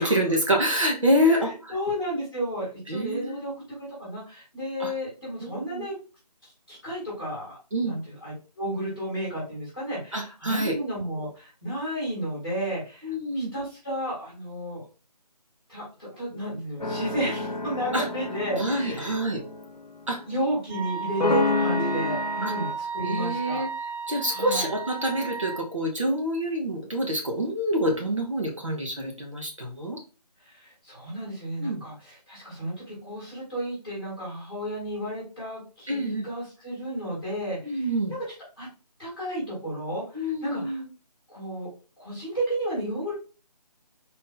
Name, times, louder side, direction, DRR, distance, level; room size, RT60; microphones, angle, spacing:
voice 1, 0.0-1.7 2.9-3.4 4.8-4.9 5.4-5.9 7.7-8.0 10.1-10.7 13.0-13.5 17.9-18.1 18.6-19.4 20.1-20.2 21.8-22.2 22.4-22.5 23.0-23.7 24.1-30.0 31.6-31.8 35.9-36.3 37.6-38.1 40.1-40.9, equal, 50° right, 1 dB, 0.9 m, -27 dB
voice 2, 1.1-3.5 3.8-6.0 6.4-14.8 15.7-19.2 20.2-23.7 24.3-24.7 30.4-37.9 38.6-38.7 39.0-40.8 41.3-41.7 42.0-43.1, right 1 dB, ahead, -17 dB, 1.4 m, -32 dB
sound 1, 16.8-20.4 21.2-22.7, left 3 dB, 75° left, 0.9 m, -29 dB
Wind instrument woodwind instrument, 20.7-25.6, right 5 dB, 30° right, 1.4 m, -34 dB
4.1 x 2.7 x 3.8 m, 0.34 s
figure-of-eight pair, 180°, 21 cm